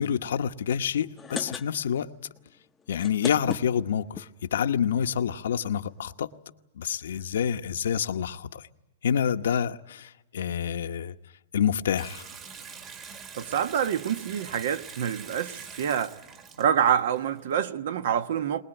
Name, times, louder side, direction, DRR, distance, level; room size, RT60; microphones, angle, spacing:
voice 1, 0.0-2.1 2.9-6.3 6.8-8.7 9.0-11.2 11.5-12.3, left 8 dB, 80° left, 1.0 m, -27 dB
sound 1, 1.0-2.1 2.4-2.5 2.8-4.3 5.0-5.1 5.3-5.4 5.6-5.8, left 6 dB, 15° left, 0.7 m, -37 dB
Water tap faucet / Sink (filling or washing) / Bathtub (filling or washing), 12.0-17.6, right 6 dB, 30° right, 2.0 m, -44 dB
voice 2, 13.3-16.1 16.6-18.6, right 9 dB, 70° right, 1.2 m, -26 dB
22.5 x 20.0 x 9.0 m
hypercardioid pair, 135°, 0 cm